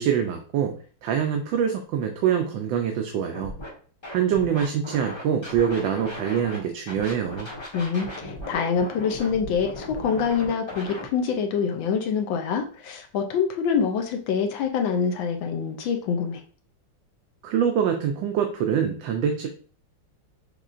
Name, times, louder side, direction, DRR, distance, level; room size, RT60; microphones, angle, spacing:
voice 1, 0.0-3.5 4.1-7.5 17.4-19.5, right 8 dB, 75° right, 4 dB, 1.3 m, -25 dB
Scratching (performance technique), 3.3-3.7 4.0-6.6 6.9-11.1, left 1 dB, 15° left, 1.1 m, -37 dB
voice 2, 7.7-16.4, left 6 dB, 80° left, 4 dB, 1.4 m, -25 dB
6.6 x 3.1 x 2.5 m, 0.44 s
omnidirectional pair, 2.2 m